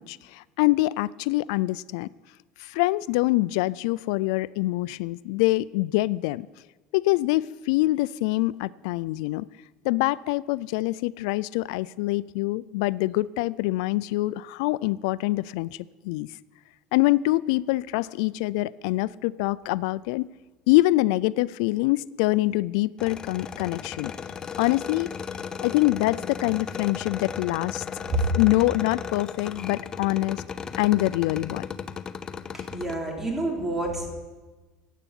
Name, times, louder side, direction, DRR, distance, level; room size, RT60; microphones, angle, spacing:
voice 1, 0.0-2.1 2.6-6.5 6.9-9.5 9.8-15.7 16.0-16.3 16.9-20.3 20.7-24.1 24.6-25.1 25.6-27.8 28.3-30.4 30.7-31.6, left 19 dB, 80° left, 19 dB, 0.3 m, -25 dB
sound 1, 23.0-33.0, left 6 dB, 25° left, 0.7 m, -36 dB
voice 2, 32.5-34.1, right 2 dB, 10° right, 0 dB, 3.6 m, -30 dB
16.0 x 8.2 x 8.8 m, 1.2 s
supercardioid pair, 130°, 3 cm